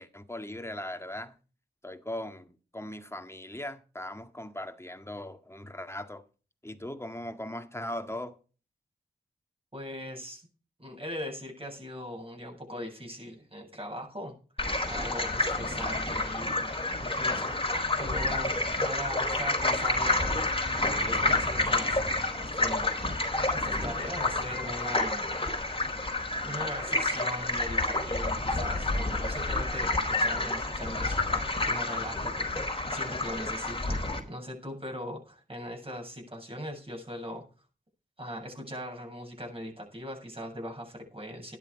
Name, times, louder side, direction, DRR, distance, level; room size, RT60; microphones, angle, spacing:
voice 1, 0.0-1.4 1.8-6.2 6.6-8.4, left 1 dB, 15° left, 1.8 m, -39 dB
voice 2, 9.7-10.5 10.8-14.4 14.8-22.0 22.4-23.3 23.5-25.4 26.4-37.4 38.2-41.6, equal, 30° right, 7.6 m, -40 dB
sound 1, 14.6-34.2, left 2 dB, 30° left, 4.4 m, -29 dB
12.5 x 11.0 x 4.9 m
cardioid pair, 40°, 18 cm